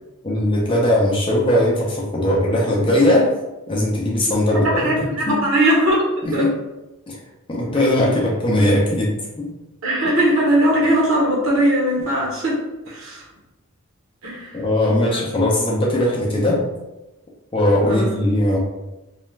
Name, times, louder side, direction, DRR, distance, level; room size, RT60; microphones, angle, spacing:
voice 1, 0.2-3.3 3.7-5.4 6.2-6.5 7.1-7.2 7.5-9.5 14.6-16.6 17.5-18.6, left 1 dB, 25° left, -3 dB, 0.5 m, -19 dB
voice 2, 4.5-6.4 9.8-12.6 12.9-13.2 14.2-14.6 14.8-15.0 17.9-18.1, right 1 dB, 70° right, -4 dB, 1.0 m, -19 dB
2.3 x 2.2 x 3.1 m, 1.0 s
head